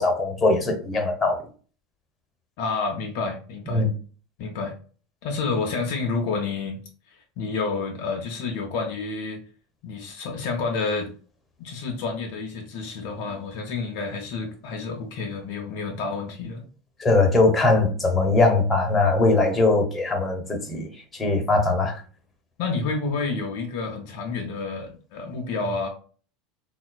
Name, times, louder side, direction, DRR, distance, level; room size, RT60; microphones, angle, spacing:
voice 1, 0.0-1.4 3.7-3.9 17.0-20.9 21.2-22.0, left 3 dB, 20° left, 0.7 m, -21 dB
voice 2, 2.6-3.9 4.4-4.7 5.2-6.8 7.1-9.4 9.8-11.1 11.6-16.6 22.6-25.9, left 4 dB, 55° left, 0.4 m, -29 dB
3.5 x 2.3 x 2.2 m
figure-of-eight pair, 75°, 0 cm